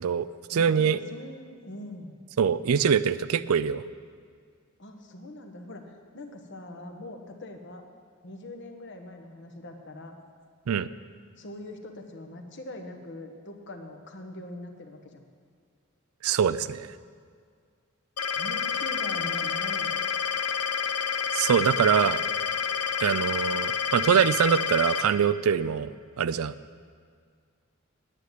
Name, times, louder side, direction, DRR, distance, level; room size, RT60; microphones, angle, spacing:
voice 1, 0.0-1.0 2.4-3.8 10.7-10.9 16.2-16.9 21.3-22.2 23.0-25.9 26.2-26.5, right 7 dB, 75° right, 15 dB, 0.4 m, -24 dB
voice 2, 0.5-2.2 4.8-7.8 8.2-10.1 11.4-15.2 18.4-20.0, left 1 dB, 55° left, 4 dB, 1.3 m, -42 dB
sound 1, 18.2-25.0, left 6 dB, 85° left, 0.9 m, -29 dB
9.8 x 8.0 x 9.3 m, 2.1 s
head